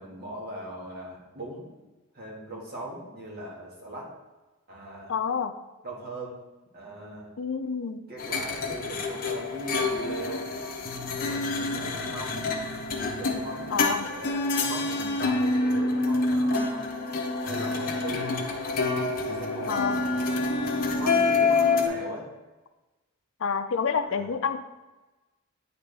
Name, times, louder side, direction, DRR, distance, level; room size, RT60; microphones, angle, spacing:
voice 1, 0.0-1.7 2.1-4.1 4.7-5.2 5.8-6.4 6.7-7.3 8.1-10.5 11.2-12.4 13.1-16.9 17.4-18.3 19.1-20.2 20.9-22.3 24.1-24.3, right 1 dB, 45° right, -3 dB, 1.8 m, -39 dB
voice 2, 5.1-5.5 7.4-8.0 13.7-14.1 19.7-20.0 23.4-24.6, left 6 dB, 60° left, 9 dB, 0.5 m, -28 dB
sound 1, 8.2-21.9, left 3 dB, 40° left, 0.9 m, -27 dB
9.3 x 4.1 x 3.4 m, 1.1 s
head